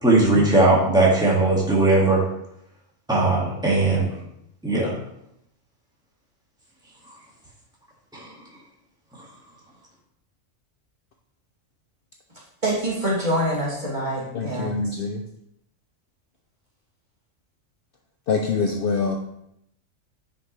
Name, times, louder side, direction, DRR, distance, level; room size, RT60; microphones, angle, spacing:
voice 1, 0.0-2.2 3.1-4.2 4.6-4.9 8.1-8.3, right 2 dB, 5° right, -6 dB, 2.0 m, -19 dB
voice 2, 12.6-14.9, right 1 dB, 35° right, -7 dB, 2.9 m, -25 dB
voice 3, 14.3-15.2 18.3-19.2, left 4 dB, 55° left, 2 dB, 0.7 m, -24 dB
9.2 x 5.7 x 3.2 m, 0.78 s
omnidirectional pair, 1.3 m